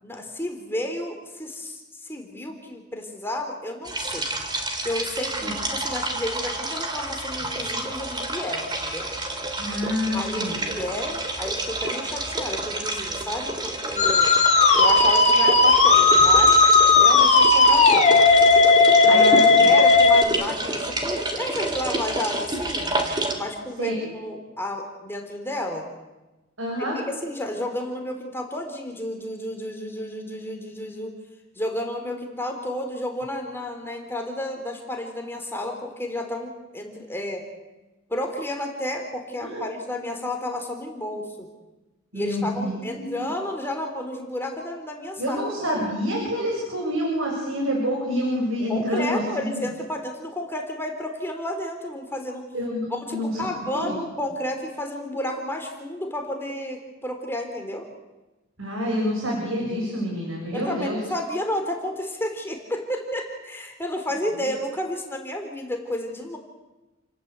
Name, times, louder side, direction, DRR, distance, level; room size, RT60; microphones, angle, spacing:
voice 1, 0.0-4.3 4.8-9.1 10.1-14.3 14.7-18.1 19.1-23.0 23.3-25.9 26.9-31.1 31.6-37.4 38.1-41.5 42.1-45.7 48.7-52.4 52.9-57.9 60.5-66.4, left 1 dB, 10° left, 2 dB, 3.6 m, -31 dB
sound 1, 3.8-23.3, right 2 dB, 20° right, 3.3 m, -29 dB
voice 2, 9.6-10.6 19.0-19.7 23.8-24.1 26.6-27.0 39.4-39.7 42.1-43.3 45.2-49.6 52.5-53.3 53.7-54.0 58.6-61.0, equal, 80° right, -1 dB, 7.3 m, -28 dB
Musical instrument, 14.0-20.2, left 3 dB, 35° left, 3.0 m, -15 dB
29.5 x 19.0 x 8.3 m, 1.1 s
head